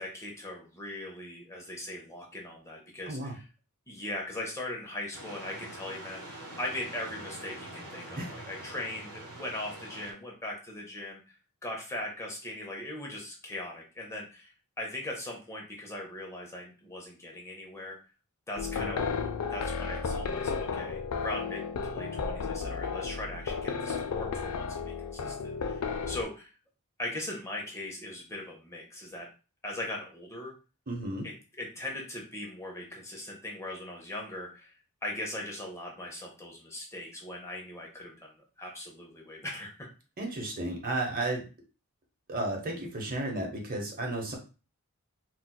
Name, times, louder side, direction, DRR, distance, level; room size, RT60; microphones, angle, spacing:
voice 1, 0.0-3.4 3.9-11.3 11.6-14.5 14.8-18.0 18.5-26.5 27.0-29.3 29.6-30.5 31.2-34.8 35.0-39.9, left 1 dB, 15° left, -1 dB, 0.6 m, -40 dB
sound 1, 5.1-10.1, right 1 dB, 80° right, 1.0 m, -44 dB
sound 2, 18.6-26.2, left 5 dB, 85° left, 0.4 m, -33 dB
voice 2, 30.9-31.3 40.2-41.4 42.3-44.4, right 2 dB, 40° right, 1 dB, 0.9 m, -33 dB
4.2 x 2.2 x 2.2 m, 0.33 s
head